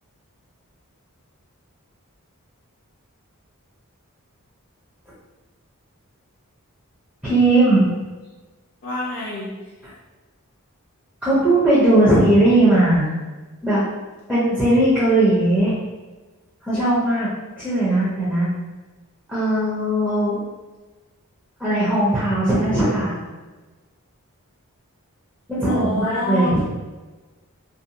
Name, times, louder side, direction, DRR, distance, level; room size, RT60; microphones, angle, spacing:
voice 1, 7.2-7.9 9.8-9.9 11.2-13.1 13.6-13.9 14.3-15.8 16.6-17.3 17.6-18.5 19.3-20.4 21.6-23.2 25.5-26.6, right 1 dB, 5° right, -11 dB, 0.5 m, -18 dB
voice 2, 8.8-9.5 25.7-26.6, left 1 dB, 45° left, -6 dB, 0.5 m, -26 dB
2.5 x 2.1 x 2.7 m, 1.2 s
head